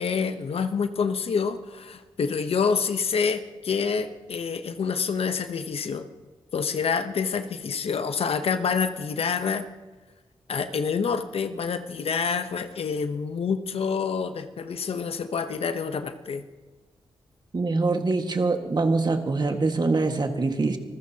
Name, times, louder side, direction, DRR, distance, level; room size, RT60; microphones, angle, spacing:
voice 1, 0.0-6.1 6.5-9.6 10.5-16.4, left 6 dB, 70° left, 9 dB, 0.9 m, -27 dB
voice 2, 17.5-20.8, right 3 dB, 45° right, 5 dB, 1.6 m, -24 dB
25.5 x 15.0 x 2.9 m, 1.3 s
cardioid pair, 50°, 10 cm